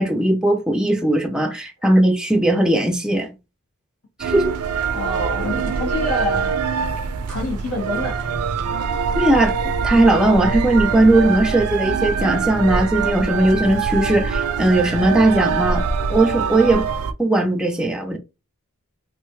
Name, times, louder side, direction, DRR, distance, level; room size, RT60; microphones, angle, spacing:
voice 1, 0.0-3.3 4.2-4.6 9.1-9.6 9.8-15.8 16.1-16.8 17.2-18.2, right 1 dB, 5° right, 0.4 m, -18 dB
sound 1, 4.2-17.1, right 5 dB, 80° right, 0.4 m, -23 dB
voice 2, 4.9-6.5 7.3-8.3, left 1 dB, 90° left, 1.7 m, -26 dB
3.1 x 2.1 x 3.1 m
head